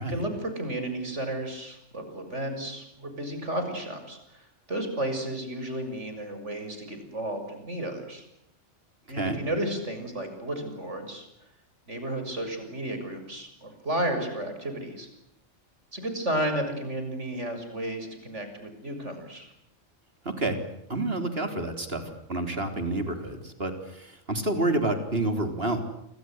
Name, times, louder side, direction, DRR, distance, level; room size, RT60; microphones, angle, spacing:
voice 1, 0.1-8.3 9.1-11.3 11.9-15.1 15.9-19.5, right 1 dB, 70° right, 7 dB, 7.1 m, -33 dB
voice 2, 20.2-20.6 20.9-25.8, right 2 dB, 50° right, 8 dB, 4.0 m, -29 dB
29.5 x 25.0 x 8.0 m, 0.77 s
omnidirectional pair, 1.3 m